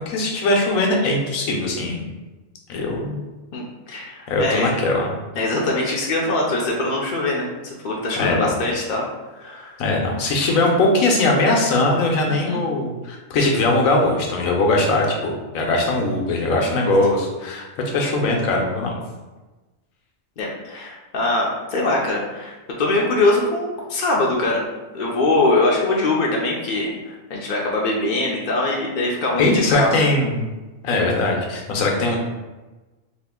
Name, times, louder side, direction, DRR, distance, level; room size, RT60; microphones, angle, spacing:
voice 1, 0.1-2.1 2.7-3.2 4.3-5.1 8.2-8.5 9.8-19.0 29.4-30.4 30.8-32.2, left 2 dB, 90° left, 0 dB, 1.1 m, -20 dB
voice 2, 3.5-4.7 5.4-9.1 9.4-9.8 12.3-12.6 20.4-24.7 24.9-30.1, left 2 dB, 60° left, -2 dB, 0.5 m, -22 dB
2.8 x 2.4 x 3.6 m, 1.2 s
omnidirectional pair, 1.4 m